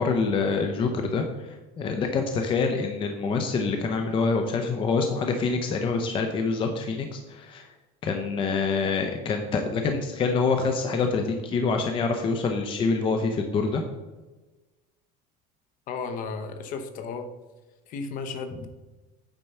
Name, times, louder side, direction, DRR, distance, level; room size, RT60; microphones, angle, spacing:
voice 1, 0.0-7.7 8.0-13.8, left 4 dB, 30° left, 4 dB, 0.7 m, -26 dB
voice 2, 15.9-17.3 17.9-18.7, left 4 dB, 45° left, 8 dB, 1.0 m, -34 dB
8.9 x 4.5 x 5.5 m, 1.2 s
cardioid pair, 155°, 18 cm